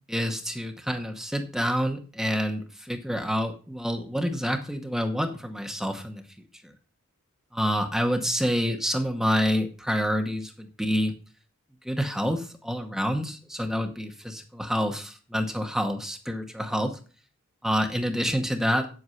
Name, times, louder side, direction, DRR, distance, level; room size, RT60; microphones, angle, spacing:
voice 1, 0.1-6.2 7.5-11.1 11.8-17.0 17.6-18.9, equal, ahead, 5 dB, 0.9 m, -27 dB
8.7 x 8.0 x 5.6 m, 0.38 s
head